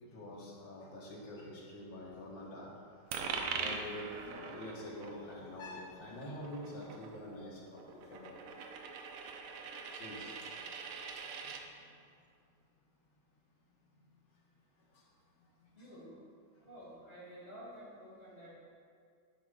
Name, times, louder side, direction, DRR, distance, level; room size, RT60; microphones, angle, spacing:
voice 1, 0.0-8.4 9.9-10.6 11.1-12.1 14.8-15.1 15.4-15.9 16.6-16.7, left 1 dB, 65° left, -4 dB, 2.3 m, -47 dB
Coin (dropping), 3.1-11.6, right 5 dB, 80° right, 1.7 m, -43 dB
voice 2, 15.7-16.2 16.7-18.5, equal, 30° left, -7 dB, 2.3 m, -51 dB
11.0 x 10.0 x 2.5 m, 2.2 s
omnidirectional pair, 2.3 m